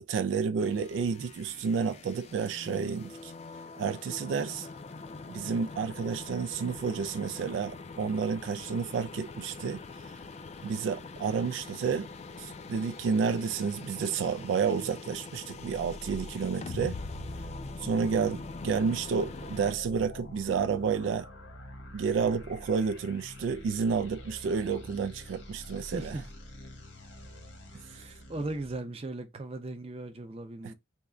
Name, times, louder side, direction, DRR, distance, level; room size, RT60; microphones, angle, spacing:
voice 1, 0.0-3.3 3.8-4.7 5.3-9.8 10.6-12.1 12.4-17.0 17.8-21.3 21.9-26.2, right 6 dB, 85° right, 0.3 m, -30 dB
sound 1, 0.6-19.7, left 4 dB, 35° left, 0.3 m, -44 dB
sound 2, 15.5-28.8, left 1 dB, 80° left, 1.1 m, -46 dB
voice 2, 25.9-26.2 27.9-30.7, right 2 dB, 30° right, 0.5 m, -38 dB
3.5 x 2.1 x 3.6 m
head